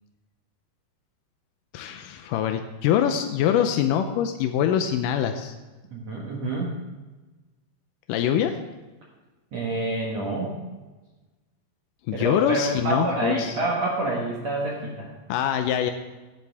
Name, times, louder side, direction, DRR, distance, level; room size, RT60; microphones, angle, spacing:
voice 1, 1.7-5.5 8.1-8.6 12.1-13.6 15.3-15.9, left 9 dB, 80° left, 6 dB, 1.9 m, -24 dB
voice 2, 5.9-6.7 9.5-10.6 12.1-15.1, right 2 dB, 55° right, -3 dB, 2.2 m, -27 dB
17.5 x 12.0 x 3.5 m, 1.2 s
omnidirectional pair, 4.6 m